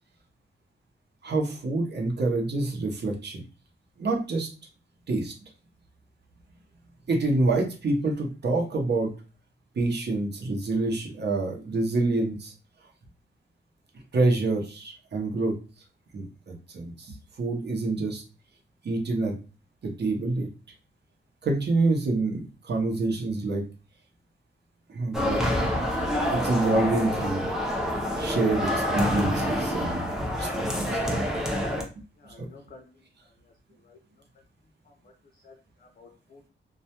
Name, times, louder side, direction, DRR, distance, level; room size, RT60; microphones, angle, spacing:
voice 1, 1.2-3.4 4.0-4.5 5.1-5.3 7.1-9.1 9.7-12.5 14.1-15.6 16.1-18.2 18.8-19.3 19.8-20.5 21.4-23.6 24.9-25.4 26.3-27.4 28.2-30.0 30.4-31.0 32.4-32.5, right 2 dB, 60° right, 1 dB, 0.7 m, -27 dB
sound 1, 25.1-31.8, equal, 5° right, 0.6 m, -27 dB
voice 2, 32.2-32.9 33.2-33.5 33.8-34.0 35.0-35.1 35.4-36.5, left 3 dB, 45° left, 2 dB, 0.5 m, -52 dB
2.3 x 2.1 x 2.8 m, 0.33 s
wide cardioid pair, 120°, 20 cm